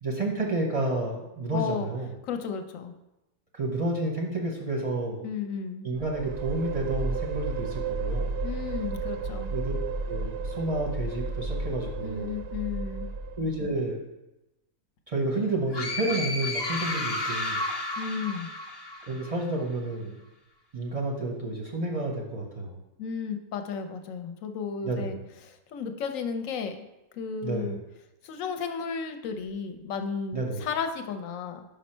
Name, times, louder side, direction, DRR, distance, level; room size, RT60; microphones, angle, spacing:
voice 1, 0.0-2.1 3.5-5.2 5.8-8.3 9.5-9.7 10.1-12.3 13.4-14.0 15.1-17.6 19.1-20.2 20.7-22.7 24.8-25.1 27.4-27.8 30.3-30.6, right 2 dB, 35° right, 0 dB, 0.6 m, -30 dB
voice 2, 1.5-1.9 2.2-3.0 5.2-5.9 8.4-9.5 12.0-13.1 18.0-18.5 23.0-25.2 25.4-26.8 27.1-27.8 28.2-31.6, left 6 dB, 70° left, 7 dB, 1.0 m, -33 dB
sound 1, 5.9-13.8, right 3 dB, 65° right, 0.7 m, -33 dB
sound 2, 15.7-19.4, left 2 dB, 35° left, 0.4 m, -32 dB
5.5 x 5.2 x 4.3 m, 0.95 s
omnidirectional pair, 1.6 m